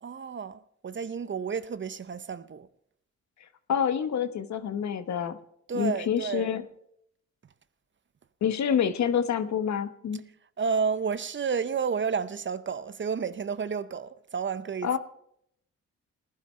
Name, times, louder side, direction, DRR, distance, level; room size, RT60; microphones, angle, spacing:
voice 1, 0.0-2.7 5.7-6.5 10.6-15.0, right 6 dB, 40° right, 0.7 m, -31 dB
voice 2, 3.7-5.4 5.7-6.7 8.4-10.2 14.8-15.0, left 8 dB, 65° left, 1.2 m, -27 dB
19.5 x 11.5 x 3.2 m
cardioid pair, 70°, 31 cm